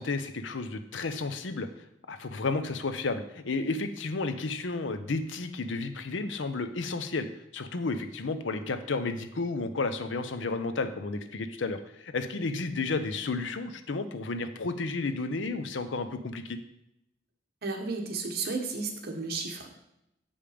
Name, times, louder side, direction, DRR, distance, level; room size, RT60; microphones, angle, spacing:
voice 1, 0.0-1.7 2.1-7.3 7.5-16.6, left 3 dB, 85° left, 10 dB, 0.7 m, -32 dB
voice 2, 17.6-19.7, right 4 dB, 60° right, 4 dB, 1.1 m, -33 dB
7.2 x 5.2 x 5.0 m, 0.83 s
head